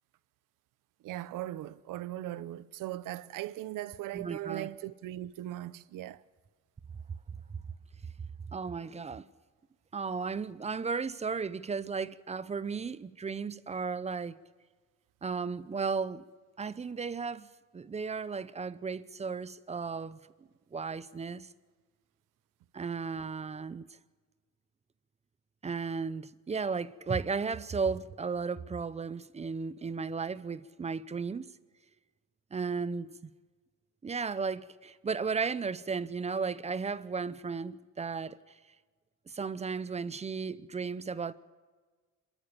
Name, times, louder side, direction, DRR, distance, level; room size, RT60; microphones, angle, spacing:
voice 1, 1.0-6.2, right 14 dB, 80° right, 0.8 m, -39 dB
voice 2, 4.1-4.7 7.5-7.6 8.5-9.3 9.9-14.4 15.2-16.2 16.6-17.5 17.7-20.2 20.7-21.5 22.7-23.8 25.6-31.5 32.5-33.3 34.0-38.4 39.3-41.3, right 5 dB, 20° right, 0.6 m, -35 dB
27.5 x 13.5 x 7.2 m
cardioid pair, 140°, 32 cm